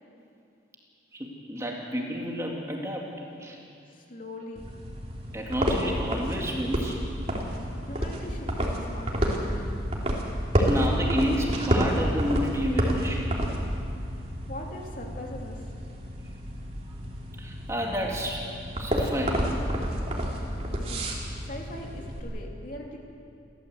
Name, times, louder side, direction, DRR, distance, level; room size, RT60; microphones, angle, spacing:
voice 1, 1.1-3.1 3.4-3.6 5.3-7.0 10.6-13.3 17.4-18.5 18.8-19.6 20.1-20.2, equal, 15° right, -1 dB, 2.4 m, -30 dB
voice 2, 3.9-4.7 7.8-9.7 14.5-15.6 20.9-21.1 21.4-23.0, left 1 dB, 45° left, 0 dB, 3.0 m, -41 dB
sound 1, 4.6-22.2, equal, 35° right, 3.0 m, -30 dB
29.5 x 13.5 x 8.0 m, 2.6 s
head